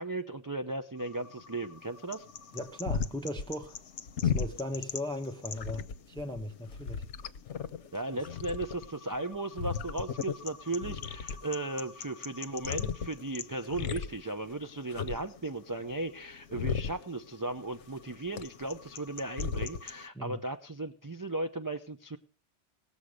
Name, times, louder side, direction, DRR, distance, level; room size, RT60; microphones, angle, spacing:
voice 1, 0.0-2.3 7.9-22.2, right 2 dB, 25° right, 0.5 m, -36 dB
sound 1, 1.0-20.1, left 7 dB, 75° left, 1.1 m, -37 dB
voice 2, 2.5-3.8 4.2-7.1 20.1-20.4, left 1 dB, 5° left, 1.0 m, -38 dB
18.5 x 7.2 x 6.4 m
omnidirectional pair, 1.2 m